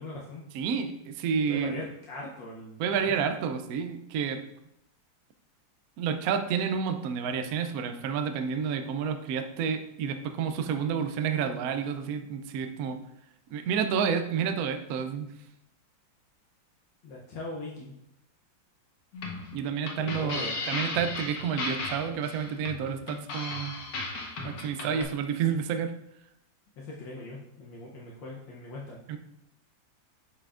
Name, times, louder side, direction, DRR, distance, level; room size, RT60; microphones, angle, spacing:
voice 1, 0.0-0.5 1.5-3.3 17.0-17.9 20.0-20.5 24.8-25.1 26.8-29.0, left 2 dB, 75° left, -4 dB, 1.6 m, -40 dB
voice 2, 0.5-1.7 2.8-4.4 6.0-13.0 13.5-15.3 19.5-23.8 24.4-26.0 29.1-29.2, right 7 dB, 70° right, 7 dB, 0.9 m, -30 dB
sound 1, 19.1-25.0, left 3 dB, 55° left, 1.3 m, -35 dB
8.3 x 5.5 x 2.5 m, 0.80 s
omnidirectional pair, 2.0 m